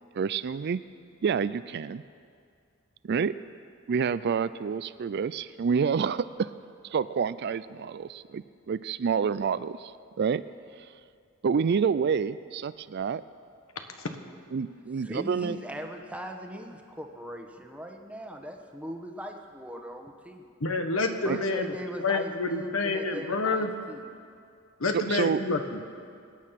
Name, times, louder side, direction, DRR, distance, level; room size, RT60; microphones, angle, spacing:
voice 1, 0.1-0.8 1.2-2.0 3.1-3.3 3.9-6.5 6.9-9.9 10.2-10.4 11.4-13.2 14.5-15.6 21.3-21.4 24.9-25.4, right 6 dB, 50° right, 15 dB, 0.4 m, -28 dB
voice 2, 15.0-20.5 21.2-24.1, equal, 5° right, 3 dB, 1.2 m, -40 dB
voice 3, 20.6-21.7 22.0-23.7 24.8-25.8, left 3 dB, 70° left, 6 dB, 1.3 m, -28 dB
25.0 x 9.3 x 5.9 m, 2.3 s
head